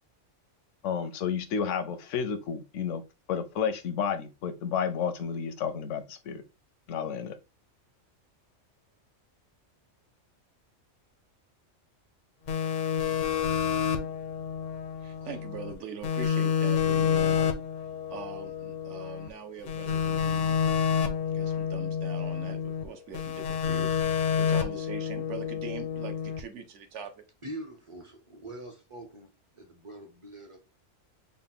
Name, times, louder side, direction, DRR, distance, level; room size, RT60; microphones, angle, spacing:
voice 1, 0.8-3.0 3.3-6.4 6.9-7.4, left 7 dB, 80° left, 0.9 m, -31 dB
sound 1, 12.5-15.7 16.0-19.3 19.7-22.9 23.1-26.4, left 7 dB, 55° left, 0.5 m, -29 dB
voice 2, 15.0-17.5 18.1-20.6 21.3-27.2, right 6 dB, 70° right, 1.0 m, -42 dB
voice 3, 27.4-30.6, right 1 dB, 35° right, 0.5 m, -44 dB
4.0 x 2.2 x 3.6 m
omnidirectional pair, 1.3 m